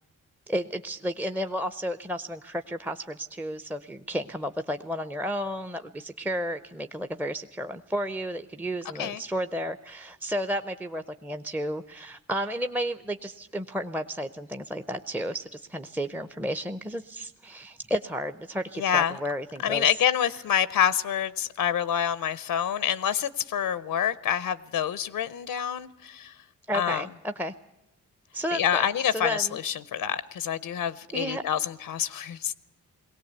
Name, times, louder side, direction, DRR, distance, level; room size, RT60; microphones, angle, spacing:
voice 1, 0.5-20.0 26.7-27.5 28.3-28.9 29.1-29.6 31.1-31.4, equal, 5° right, 9 dB, 0.6 m, -32 dB
voice 2, 18.8-19.2 19.6-26.3 26.7-27.0 28.5-32.5, left 9 dB, 80° left, 16 dB, 0.6 m, -27 dB
19.5 x 17.5 x 8.1 m, 1.0 s
cardioid pair, 55°, 34 cm